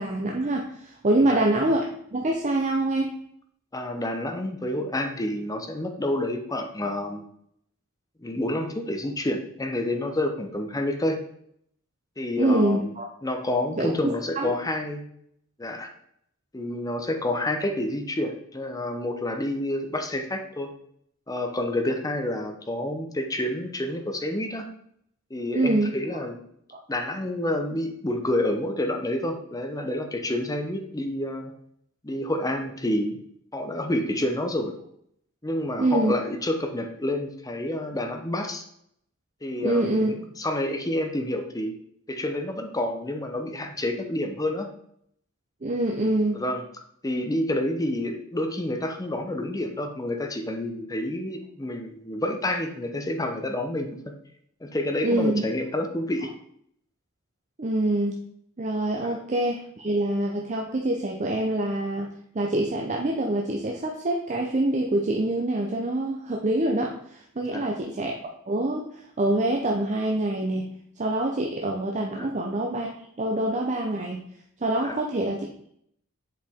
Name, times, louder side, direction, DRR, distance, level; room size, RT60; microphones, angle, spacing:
voice 1, 0.0-1.8 2.1-3.2 12.4-13.1 13.8-14.5 25.5-26.0 35.8-36.1 39.6-40.1 45.6-46.4 55.0-55.4 57.6-58.1 58.6-62.1 62.3-68.2 68.5-68.8 69.2-72.9 73.2-74.2 74.6-75.7, right 1 dB, 35° right, 1 dB, 0.6 m, -25 dB
voice 2, 3.7-7.2 8.2-11.2 12.2-12.9 13.2-15.1 15.6-15.9 16.5-20.7 21.3-24.7 25.3-26.4 26.9-31.5 32.0-33.2 33.5-34.7 35.4-38.6 39.4-41.7 42.1-44.7 46.3-46.6 47.0-54.1 54.6-56.3 59.0-59.1 67.4-67.7 72.1-72.3 74.8-75.0, left 1 dB, 15° left, 5 dB, 0.7 m, -29 dB
7.5 x 4.8 x 3.6 m, 0.70 s
head